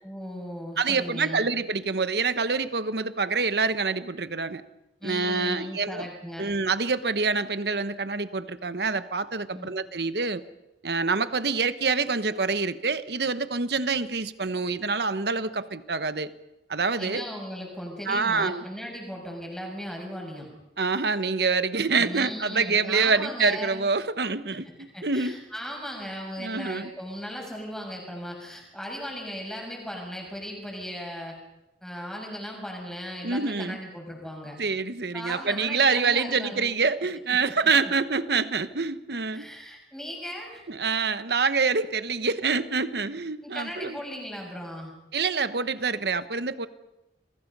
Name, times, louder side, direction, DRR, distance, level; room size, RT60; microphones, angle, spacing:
voice 1, 0.0-1.5 5.0-6.5 9.5-9.7 17.0-20.5 22.0-23.8 24.6-31.4 31.8-34.6 35.1-36.7 37.3-37.4 37.8-37.9 39.3-40.6 43.4-44.9, equal, 5° left, 0 dB, 6.6 m, -37 dB
voice 2, 0.8-4.6 5.0-6.1 6.4-10.4 10.8-16.3 16.7-17.2 18.1-18.6 20.8-25.4 26.4-26.9 33.2-33.8 34.6-39.5 40.7-44.0 45.1-46.7, right 4 dB, 70° right, 12 dB, 1.1 m, -26 dB
29.0 x 23.0 x 5.5 m, 0.94 s
head